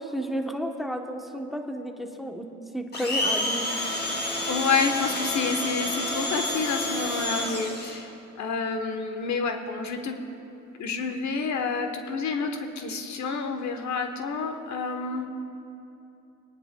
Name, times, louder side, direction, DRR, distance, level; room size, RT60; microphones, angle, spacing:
voice 1, 0.0-2.5 2.7-3.7, equal, ahead, 4 dB, 0.9 m, -32 dB
Domestic sounds home sounds, 2.9-8.0, left 1 dB, 35° left, 2.6 m, -29 dB
voice 2, 4.5-8.1 8.4-10.2 10.8-15.3, left 4 dB, 70° left, 6 dB, 1.1 m, -29 dB
27.5 x 10.0 x 2.2 m, 2.9 s
cardioid pair, 90°, 30 cm